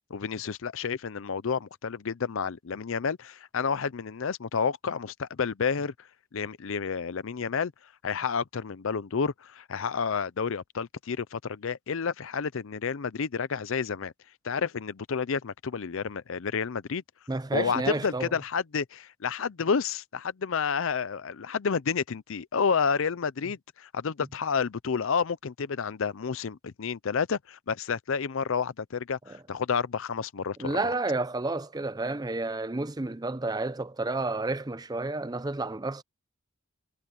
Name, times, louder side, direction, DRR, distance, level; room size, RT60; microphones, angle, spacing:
voice 1, 0.1-5.9 6.3-7.7 8.0-14.1 14.4-17.0 17.5-30.7, left 6 dB, 60° left, 0.5 m, -30 dB
voice 2, 17.3-18.4 29.3-29.4 30.6-36.0, right 2 dB, 20° right, 0.5 m, -31 dB
head